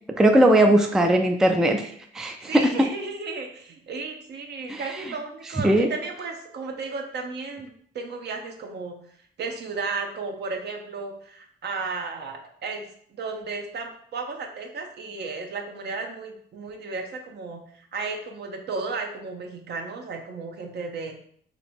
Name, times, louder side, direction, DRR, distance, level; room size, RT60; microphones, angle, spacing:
voice 1, 0.2-2.6 4.7-4.8 5.6-5.9, right 1 dB, 5° right, 4 dB, 0.4 m, -19 dB
voice 2, 2.4-9.0 9.4-21.2, right 4 dB, 55° right, 3 dB, 0.7 m, -34 dB
2.9 x 2.8 x 4.3 m, 0.62 s
cardioid pair, 90°, 20 cm